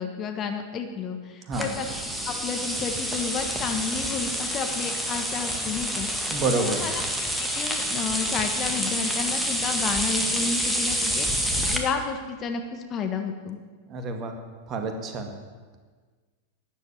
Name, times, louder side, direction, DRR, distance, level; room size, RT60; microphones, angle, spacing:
voice 1, 0.0-1.9 2.3-7.0 7.4-13.6, left 5 dB, 30° left, 5 dB, 1.5 m, -31 dB
sound 1, 1.5-11.8, equal, 5° right, 1.9 m, -28 dB
voice 2, 6.3-6.9 13.9-14.4 14.7-15.3, right 3 dB, 30° right, 5 dB, 2.1 m, -28 dB
12.5 x 9.9 x 9.4 m, 1.4 s
figure-of-eight pair, 90°, 0 cm